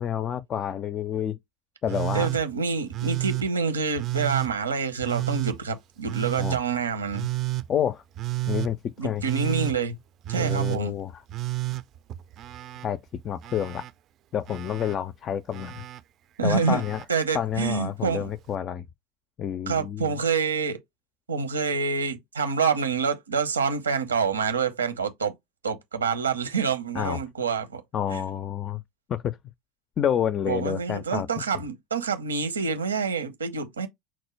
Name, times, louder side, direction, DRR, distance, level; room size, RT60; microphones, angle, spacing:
voice 1, 0.0-1.4 1.8-2.3 6.4-6.6 7.7-8.0 8.5-9.2 10.3-11.2 12.8-13.9 14.3-15.8 16.4-17.0 17.3-18.9 19.4-20.1 26.9-27.2 27.9-28.8 29.1-29.4 30.0-31.3, left 9 dB, 40° left, 0.4 m, -29 dB
Telephone, 1.9-2.4 2.9-3.5 4.0-4.5 5.0-5.6 6.1-6.6 7.1-7.7 8.2-8.7 9.2-9.8 10.2-10.8 11.3-12.9 13.1-13.9 14.5-15.0 15.5-16.0 16.6-17.1 18.3-18.4, right 17 dB, 45° right, 0.4 m, -30 dB
voice 2, 2.1-7.3 9.0-10.0 10.3-10.9 16.4-16.8 17.1-18.3 19.7-20.8 21.3-25.3 25.6-27.8 28.1-28.2 30.5-33.9, right 5 dB, 85° right, 0.8 m, -27 dB
5.9 x 2.1 x 3.1 m
figure-of-eight pair, 75°, 0 cm